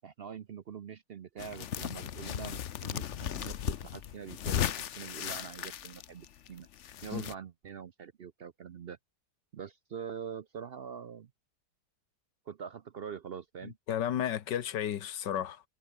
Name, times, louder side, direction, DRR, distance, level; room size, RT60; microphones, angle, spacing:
voice 1, 0.0-6.7 7.0-9.0 9.5-11.3 12.5-13.8, right 7 dB, 65° right, 0.5 m, -44 dB
sound 1, 1.4-7.3, left 10 dB, 55° left, 0.9 m, -36 dB
voice 2, 13.6-15.6, left 10 dB, 80° left, 1.8 m, -33 dB
omnidirectional pair, 1.9 m